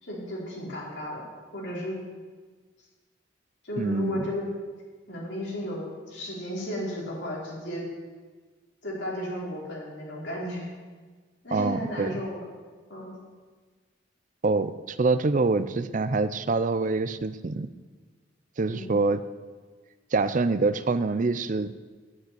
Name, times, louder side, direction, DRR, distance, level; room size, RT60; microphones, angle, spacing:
voice 1, 0.0-1.2 1.5-2.0 3.6-4.5 5.1-7.8 8.8-10.7 11.4-12.4 12.9-13.1 18.7-18.9, left 1 dB, 75° left, -4 dB, 4.8 m, -34 dB
voice 2, 3.8-4.3 11.5-12.2 14.4-17.7 18.6-19.2 20.1-21.7, right 3 dB, 45° right, 14 dB, 0.5 m, -25 dB
9.6 x 9.3 x 9.3 m, 1.4 s
head